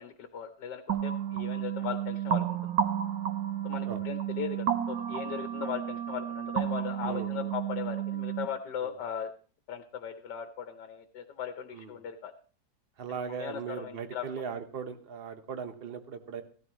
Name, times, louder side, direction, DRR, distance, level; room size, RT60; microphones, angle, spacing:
voice 1, 0.0-2.7 3.6-9.3 9.7-12.3 13.3-14.3, left 8 dB, 80° left, 8 dB, 1.5 m, -38 dB
sound 1, 0.9-8.5, right 9 dB, 65° right, 1.2 m, -32 dB
voice 2, 7.0-7.5 8.8-8.9 11.7-12.0 13.0-16.4, right 6 dB, 40° right, 9 dB, 1.1 m, -39 dB
16.0 x 13.5 x 3.0 m, 0.40 s
omnidirectional pair, 1.8 m